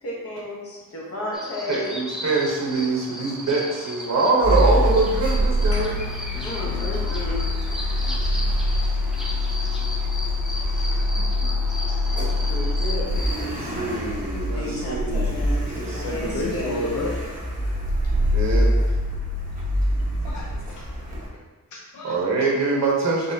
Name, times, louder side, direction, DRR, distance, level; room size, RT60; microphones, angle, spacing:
voice 1, 0.0-2.0 5.7-5.8 6.4-7.5 12.4-13.7 14.5-17.1, equal, 45° left, -4 dB, 1.0 m, -33 dB
sound 1, 1.3-13.5, left 1 dB, ahead, 0.3 m, -35 dB
voice 2, 1.7-6.0 13.5-15.4 15.7-16.4 18.3-18.7 22.0-23.3, right 3 dB, 55° right, -2 dB, 0.9 m, -24 dB
Car, 4.4-21.3, left 1 dB, 25° right, 0.9 m, -24 dB
voice 3, 15.7-17.1 20.2-21.0 21.7-22.1, left 2 dB, 60° left, -3 dB, 0.5 m, -32 dB
4.0 x 3.6 x 2.7 m, 1.3 s
wide cardioid pair, 170°, 34 cm